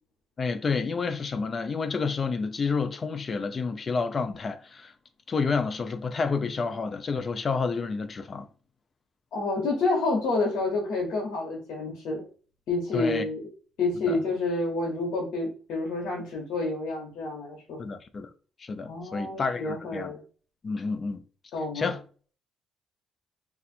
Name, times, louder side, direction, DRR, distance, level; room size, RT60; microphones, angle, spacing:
voice 1, 0.4-4.9 5.3-8.5 12.9-13.3 14.1-14.2 17.8-18.3 18.6-20.1 20.6-21.2 21.7-22.0, left 4 dB, 40° left, 0.5 m, -29 dB
voice 2, 9.3-12.2 12.7-13.4 13.8-17.8 18.9-20.2 21.5-21.9, left 3 dB, 75° left, 1.1 m, -29 dB
2.6 x 2.4 x 4.1 m
cardioid pair, 90°, 0 cm